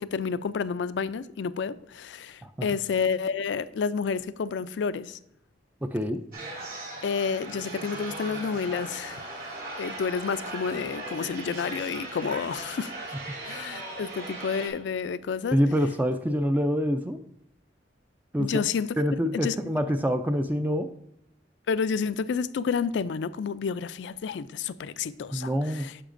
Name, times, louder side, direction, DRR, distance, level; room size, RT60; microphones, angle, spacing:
voice 1, 0.0-5.2 7.0-9.2 9.8-12.9 13.4-15.6 18.4-18.9 19.3-19.6 21.7-25.9, left 6 dB, 70° left, 0.4 m, -30 dB
voice 2, 5.8-6.3 15.5-17.2 18.3-18.6 19.0-20.9 25.3-25.9, equal, 10° right, 0.3 m, -26 dB
sound 1, 6.3-14.7, right 2 dB, 55° right, 2.6 m, -38 dB
9.9 x 6.6 x 2.5 m
head